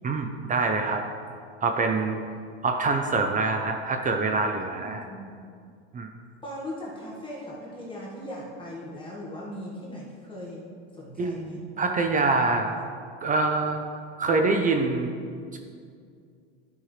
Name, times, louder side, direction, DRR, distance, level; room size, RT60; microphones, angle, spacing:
voice 1, 0.0-1.0 1.6-2.2 2.6-5.0 5.9-6.1 11.2-12.7 13.2-13.8 14.2-15.1 15.5-15.6, right 3 dB, 25° right, 4 dB, 0.6 m, -25 dB
voice 2, 4.7-5.5 6.4-10.6 10.9-11.6, left 1 dB, 15° left, -5 dB, 1.6 m, -39 dB
12.5 x 5.5 x 3.2 m, 2.3 s
supercardioid pair, 115°, 36 cm